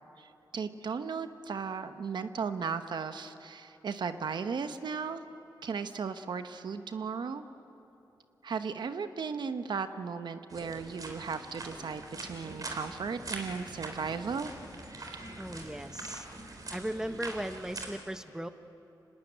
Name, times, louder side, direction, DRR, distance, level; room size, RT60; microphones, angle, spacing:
voice 1, 0.2-5.2 5.6-7.4 8.4-14.5, right 5 dB, 70° right, 9 dB, 1.1 m, -36 dB
sound 1, 10.5-17.9, right 2 dB, 50° right, 3.8 m, -43 dB
voice 2, 15.4-16.3 16.7-18.5, right 1 dB, 5° right, 9 dB, 1.1 m, -37 dB
25.5 x 20.0 x 9.0 m, 2.9 s
cardioid pair, 70°, 8 cm